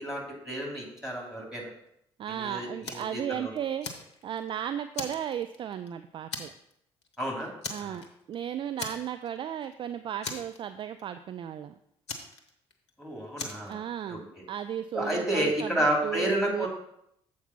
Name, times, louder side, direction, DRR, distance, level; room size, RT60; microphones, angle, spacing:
voice 1, 0.0-1.7 2.3-3.5 7.2-7.5 7.9-8.0 13.0-13.8 14.1-14.4 14.9-16.7, right 1 dB, ahead, -2 dB, 2.9 m, -31 dB
voice 2, 2.2-3.9 4.2-6.5 7.7-11.7 13.7-16.7, right 9 dB, 35° right, 10 dB, 0.4 m, -35 dB
Fire, 2.8-3.2 3.6-4.5 4.9-5.9 6.3-6.7 7.0-7.2 7.6-8.3 8.8-9.4 9.6-9.7 10.2-11.0 12.1-12.9 13.4-13.7, left 3 dB, 75° left, 0.7 m, -38 dB
7.1 x 4.6 x 5.6 m, 0.74 s
figure-of-eight pair, 45°, 14 cm